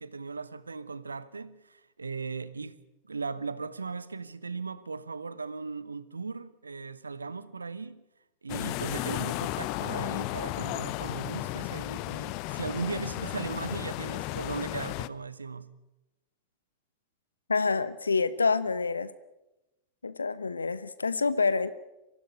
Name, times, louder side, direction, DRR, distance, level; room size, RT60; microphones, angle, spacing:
voice 1, 0.0-2.8 3.0-8.0 8.4-15.7, right 4 dB, 75° right, 1.0 m, -37 dB
sound 1, 8.5-15.1, left 18 dB, 45° left, 0.7 m, -34 dB
voice 2, 17.5-19.1 20.0-21.7, left 4 dB, 75° left, 0.9 m, -27 dB
24.0 x 15.0 x 9.1 m
figure-of-eight pair, 90°, 0 cm